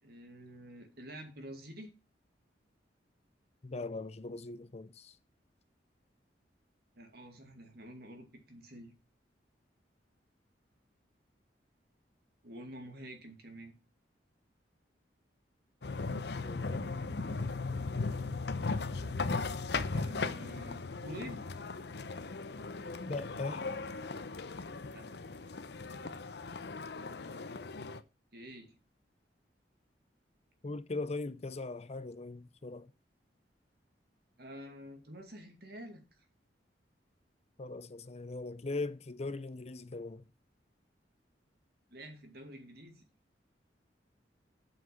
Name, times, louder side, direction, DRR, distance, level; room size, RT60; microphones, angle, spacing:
voice 1, 0.0-1.9 6.9-8.9 12.4-13.7 16.7-17.9 19.9-21.5 24.9-25.1 28.3-28.7 34.4-36.0 41.9-43.0, equal, 60° right, 2.5 m, -49 dB
voice 2, 3.6-5.2 16.4-16.9 23.0-23.7 30.6-32.9 37.6-40.2, left 3 dB, 35° left, 0.6 m, -40 dB
sound 1, 15.8-28.0, left 3 dB, 65° left, 0.8 m, -37 dB
7.8 x 6.0 x 7.1 m
head